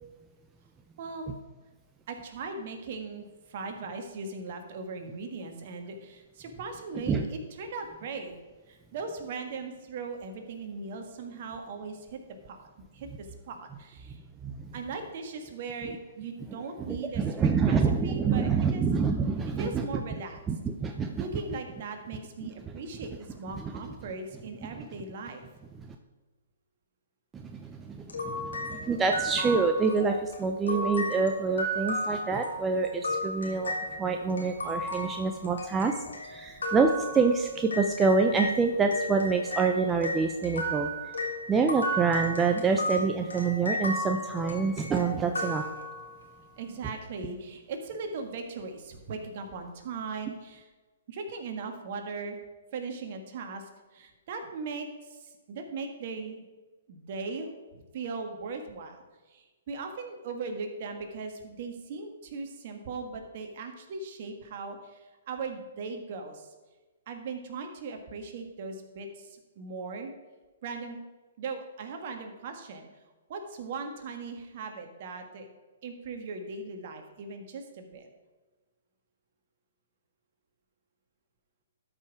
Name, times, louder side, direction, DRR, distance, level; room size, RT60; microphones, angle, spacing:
voice 1, 1.0-1.3 2.1-8.3 8.7-14.2 14.7-18.8 19.6-20.4 21.2-25.4 46.6-50.7 51.1-52.4 52.7-56.4 56.9-59.0 59.3-66.5 67.1-70.1 70.6-71.0 71.4-72.9 73.3-75.5 75.8-78.1, right 4 dB, 50° right, 5 dB, 1.7 m, -39 dB
voice 2, 14.4-14.7 16.8-20.0 20.5-21.2 22.4-22.5 23.6-23.7 27.3-33.7 34.0-35.9 36.2-40.9 41.5-45.6, right 4 dB, 15° right, 4 dB, 0.6 m, -27 dB
sound 1, 28.1-38.6 38.9-46.3, left 1 dB, 85° left, 2.2 m, -35 dB
12.5 x 5.5 x 4.8 m, 1.3 s
hypercardioid pair, 130°, 0 cm